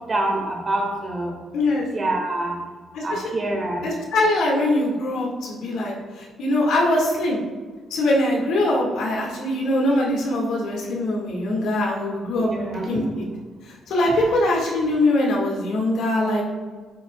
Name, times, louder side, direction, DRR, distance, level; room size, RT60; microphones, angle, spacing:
voice 1, 0.1-1.4 1.9-2.6 3.0-3.9 8.7-8.9 12.4-13.0 14.1-14.2, right 2 dB, 35° right, 0 dB, 2.1 m, -26 dB
voice 2, 1.5-1.9 2.9-3.2 3.8-7.4 7.9-13.2 13.7-16.4, left 1 dB, 80° left, -2 dB, 2.0 m, -22 dB
10.0 x 7.2 x 2.4 m, 1.4 s
cardioid pair, 90°, 0 cm